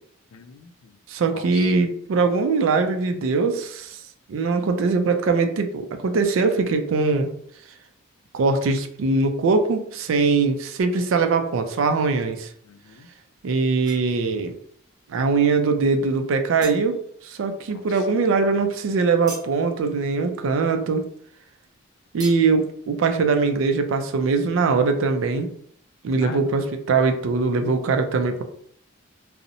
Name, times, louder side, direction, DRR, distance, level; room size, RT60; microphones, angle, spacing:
voice 1, 0.3-1.0 1.3-1.7 12.6-13.1 17.7-18.1 26.2-26.5, left 6 dB, 90° left, 9 dB, 0.3 m, -40 dB
voice 2, 1.1-4.0 4.3-7.3 8.3-12.5 13.4-14.5 15.1-17.0 17.2-21.1 22.1-25.5 26.0-28.4, right 4 dB, 75° right, 7 dB, 0.3 m, -21 dB
sound 1, 13.8-14.5 14.9-15.4 15.9-16.0 16.3-17.4 17.6-21.4 21.7-21.8 22.2-22.6, right 2 dB, 20° right, 0.6 m, -42 dB
2.7 x 2.0 x 2.5 m, 0.65 s
head